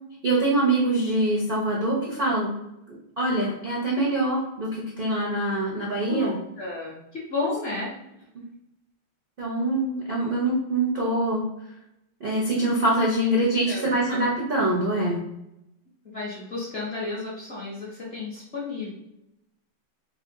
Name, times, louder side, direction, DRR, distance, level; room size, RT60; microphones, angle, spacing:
voice 1, 0.2-2.5 2.9-6.4 9.4-11.5 12.2-15.2, right 1 dB, 85° right, -5 dB, 0.4 m, -24 dB
voice 2, 6.6-7.9 12.5-12.7 13.7-14.2 16.0-18.9, left 3 dB, 55° left, -6 dB, 0.7 m, -32 dB
3.6 x 3.4 x 2.2 m, 0.86 s
omnidirectional pair, 2.1 m